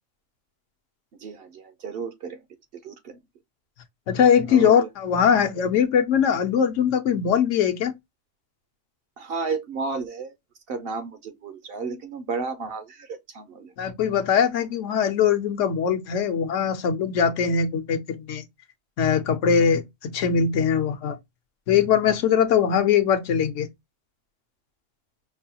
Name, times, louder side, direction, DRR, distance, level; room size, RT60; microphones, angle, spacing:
voice 1, 1.2-2.4 2.8-3.2 4.5-4.9 9.2-10.3 10.7-13.7, right 4 dB, 60° right, 0.7 m, -32 dB
voice 2, 4.1-7.9 13.8-18.4 19.0-21.2 21.7-23.7, left 7 dB, 75° left, 1.0 m, -21 dB
5.4 x 2.2 x 2.7 m
omnidirectional pair, 1.3 m